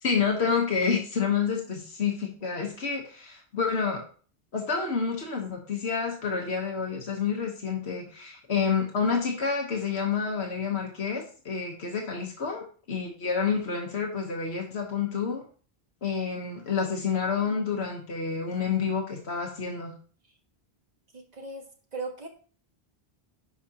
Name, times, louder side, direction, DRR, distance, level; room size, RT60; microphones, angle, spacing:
voice 1, 0.0-4.0 4.5-15.4 16.0-19.9, left 6 dB, 85° left, 1 dB, 1.5 m, -29 dB
voice 2, 21.1-21.7 21.9-22.3, right 3 dB, 40° right, 3 dB, 1.4 m, -37 dB
11.0 x 5.0 x 2.9 m, 0.42 s
omnidirectional pair, 1.1 m